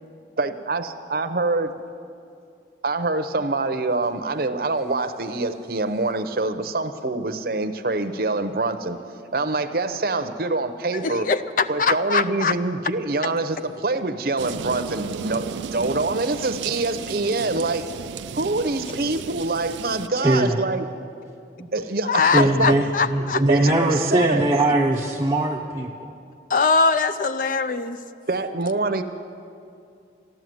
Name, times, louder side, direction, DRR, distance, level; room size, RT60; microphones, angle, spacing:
voice 1, 0.4-1.7 2.8-9.0 9.3-11.3 11.7-17.9 18.3-20.9 21.7-22.8 23.3-24.5 28.3-29.0, right 3 dB, 55° right, 9 dB, 0.7 m, -25 dB
voice 2, 10.9-12.6 22.1-23.4 26.5-28.0, left 4 dB, 50° left, 12 dB, 0.5 m, -22 dB
sound 1, 14.4-20.1, right 6 dB, 85° right, 0.4 m, -34 dB
voice 3, 20.2-20.6 21.6-21.7 22.2-25.9, right 1 dB, 15° right, -2 dB, 0.6 m, -21 dB
13.0 x 12.0 x 7.8 m, 2.4 s
head